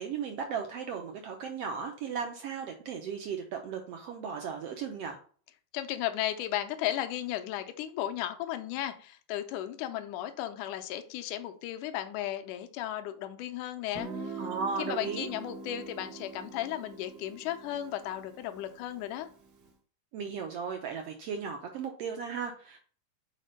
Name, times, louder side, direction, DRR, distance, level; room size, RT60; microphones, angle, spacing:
voice 1, 0.0-5.2 14.4-15.3 20.1-22.8, right 6 dB, 80° right, 4 dB, 1.4 m, -36 dB
voice 2, 5.7-14.4 14.8-19.3, left 12 dB, 80° left, 8 dB, 2.1 m, -35 dB
Guitar, 13.9-19.5, right 3 dB, 65° right, 1.0 m, -43 dB
6.3 x 4.2 x 5.2 m, 0.43 s
omnidirectional pair, 3.6 m